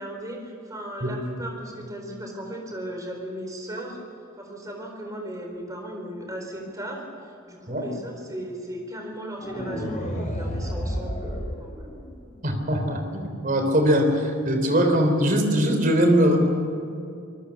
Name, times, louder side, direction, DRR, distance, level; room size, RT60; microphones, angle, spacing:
voice 1, 0.0-4.0 4.4-11.9, equal, 15° right, 1 dB, 4.1 m, -36 dB
sound 1, 9.4-12.4, equal, 40° left, 3.7 m, -31 dB
voice 2, 12.4-16.4, equal, 40° right, 5 dB, 3.5 m, -21 dB
25.0 x 20.0 x 7.0 m, 2.5 s
head